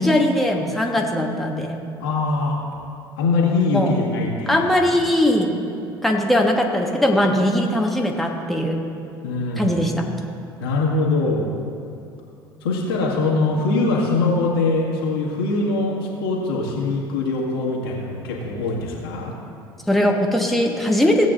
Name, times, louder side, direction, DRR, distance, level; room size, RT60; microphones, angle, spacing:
voice 1, 0.0-1.8 3.7-3.9 4.5-5.6 6.0-8.8 9.6-10.1 19.9-21.3, left 1 dB, ahead, 0 dB, 1.2 m, -20 dB
voice 2, 2.0-2.5 3.2-4.8 9.2-9.7 10.6-11.5 12.6-19.3, left 3 dB, 80° left, -3 dB, 1.9 m, -22 dB
17.0 x 8.2 x 2.6 m, 2.6 s
hypercardioid pair, 65°, 12 cm